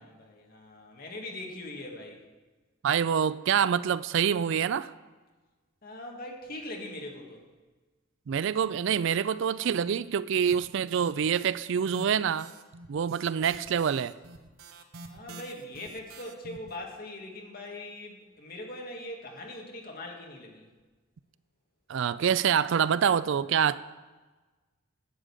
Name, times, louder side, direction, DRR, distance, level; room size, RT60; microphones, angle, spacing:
voice 1, 0.0-2.2 5.8-7.4 15.1-20.7, left 1 dB, 45° left, 1.9 m, -41 dB
voice 2, 2.8-4.9 8.3-12.5 12.9-14.1 21.9-23.8, right 7 dB, 60° right, 0.3 m, -26 dB
sound 1, 10.4-11.5 11.8-16.7, right 2 dB, 85° right, 0.9 m, -47 dB
11.0 x 5.2 x 8.3 m
head